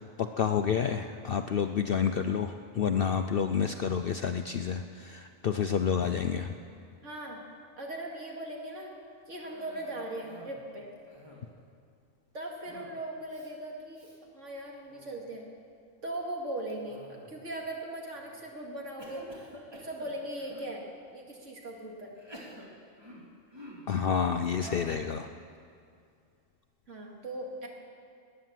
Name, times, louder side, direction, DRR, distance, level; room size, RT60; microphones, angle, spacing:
voice 1, 0.0-6.6 23.9-25.3, left 7 dB, 60° left, 7 dB, 0.6 m, -29 dB
voice 2, 7.0-7.4 7.8-8.9 9.3-10.9 12.3-14.1 14.3-15.5 16.0-17.0 17.3-19.3 19.7-22.1 26.9-27.7, right 1 dB, 60° right, -1 dB, 2.6 m, -39 dB
Cough, 9.4-10.6 11.0-11.6 12.6-13.0 13.3-13.5 13.9-14.2 14.7-15.2 16.7-17.5 18.1-18.5 19.0-20.7 21.4-21.5 22.1-24.0 24.6-25.0, equal, 20° right, 2.4 m, -49 dB
19.0 x 9.7 x 7.5 m, 2.3 s
omnidirectional pair, 1.4 m